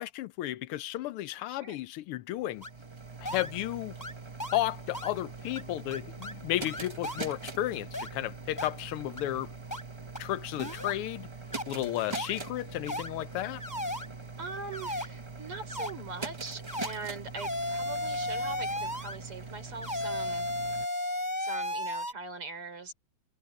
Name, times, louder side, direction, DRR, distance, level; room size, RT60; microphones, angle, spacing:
voice 1, 0.0-2.6 3.2-3.9 4.5-9.5 10.2-11.3 11.7-13.6, left 14 dB, 90° left, 1.6 m, -33 dB
voice 2, 1.5-1.8 14.4-20.5 21.4-22.9, right 4 dB, 90° right, 5.1 m, -41 dB
sound 1, 2.4-20.9, right 4 dB, 30° right, 0.5 m, -43 dB
sound 2, 2.6-2.7 3.3-3.5 4.0-4.1 4.4-4.6 4.9-5.1 5.6-5.7 5.9-6.3 6.7-7.3 7.9-8.1 8.6-8.7 9.2-9.3 9.7-9.8 10.2-10.3 10.6-11.0 11.5-11.6 12.1-12.3 12.9-13.1 13.6-14.1 14.7-15.1 15.7-15.9 16.7-16.9 17.4-19.2 19.8-22.1, left 1 dB, 10° left, 4.0 m, -34 dB
omnidirectional pair, 2.4 m